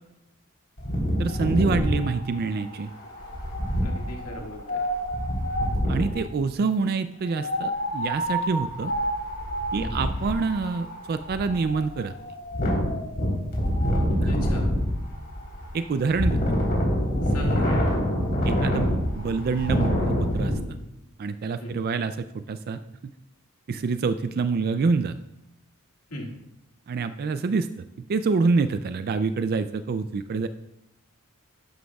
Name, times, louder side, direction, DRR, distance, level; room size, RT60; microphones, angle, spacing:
Wind, 0.8-6.2 7.3-20.5, equal, 45° left, 3.6 m, -26 dB
voice 1, 1.2-2.9 5.9-8.9 9.7-12.1 14.2-14.5 15.7-16.4 18.4-20.5 21.2-22.8 23.7-25.2 26.9-27.7 28.0-30.5, right 4 dB, 45° right, 11 dB, 0.3 m, -26 dB
voice 2, 3.8-4.8 9.7-10.1 14.3-14.7 17.2-17.8 21.6-21.8 26.1-26.3, left 1 dB, 85° left, -1 dB, 2.1 m, -38 dB
11.5 x 11.5 x 2.3 m, 0.87 s
head